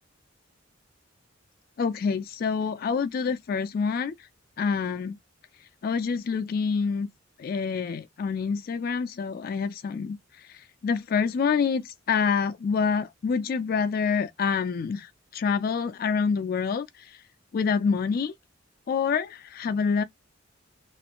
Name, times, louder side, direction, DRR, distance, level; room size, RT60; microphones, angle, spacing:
voice 1, 1.8-4.3 4.6-5.2 5.6-7.1 7.4-17.2 17.5-18.3 18.9-20.0, left 5 dB, 50° left, 0.3 m, -27 dB
3.0 x 2.4 x 2.9 m
head